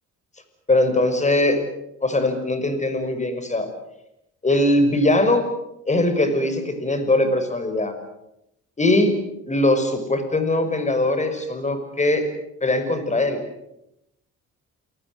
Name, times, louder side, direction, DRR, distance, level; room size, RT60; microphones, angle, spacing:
voice 1, 0.7-1.6 2.0-3.7 4.4-5.4 5.9-7.9 8.8-9.1 9.5-12.3 12.6-13.4, left 1 dB, 25° left, 8 dB, 6.1 m, -21 dB
29.0 x 19.5 x 8.0 m, 0.85 s
cardioid pair, 90°, 30 cm